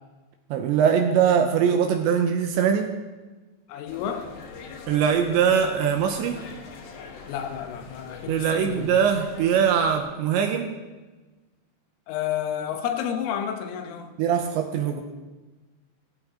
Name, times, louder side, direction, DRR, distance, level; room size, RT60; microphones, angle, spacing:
voice 1, 0.5-2.9 4.9-6.4 8.3-10.7 14.2-15.0, right 7 dB, 80° right, 4 dB, 2.9 m, -22 dB
voice 2, 3.7-4.2 7.3-9.0 12.1-14.1, left 9 dB, 90° left, 6 dB, 3.7 m, -30 dB
sound 1, 3.9-10.0, left 5 dB, 60° left, 2.7 m, -43 dB
15.5 x 15.0 x 3.8 m, 1.2 s
omnidirectional pair, 5.6 m